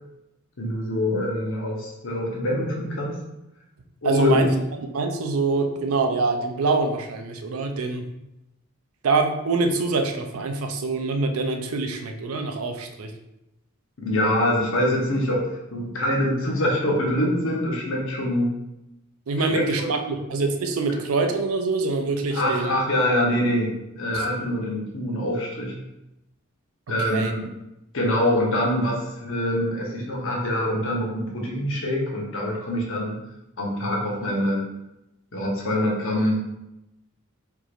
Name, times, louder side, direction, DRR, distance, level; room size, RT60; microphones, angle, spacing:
voice 1, 0.6-3.2 4.0-4.5 14.0-18.5 19.5-20.2 22.3-25.7 26.9-27.5 27.9-33.2 33.6-34.7 35.3-36.4, left 1 dB, 65° left, -2 dB, 1.0 m, -24 dB
voice 2, 4.0-4.5 4.9-8.0 9.0-13.1 19.3-22.7 24.1-24.2 27.1-27.3, right 3 dB, 70° right, 5 dB, 0.5 m, -25 dB
4.5 x 2.9 x 2.5 m, 0.90 s
head